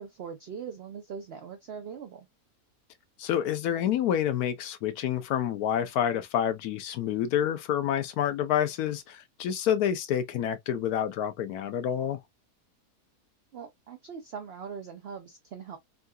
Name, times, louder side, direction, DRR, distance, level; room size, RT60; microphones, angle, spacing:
voice 1, 0.0-2.3 13.5-15.8, right 6 dB, 70° right, 0.5 m, -41 dB
voice 2, 3.2-12.2, left 9 dB, 75° left, 1.0 m, -28 dB
3.6 x 2.3 x 2.2 m
omnidirectional pair, 1.7 m